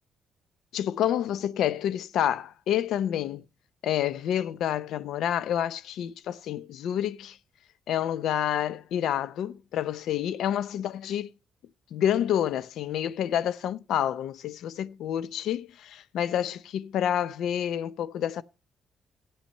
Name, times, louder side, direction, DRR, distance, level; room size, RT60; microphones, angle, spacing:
voice 1, 0.7-3.4 3.8-7.4 7.9-11.3 11.9-18.4, left 10 dB, 80° left, 0.6 m, -28 dB
13.5 x 9.0 x 5.4 m
cardioid pair, 90°, 0 cm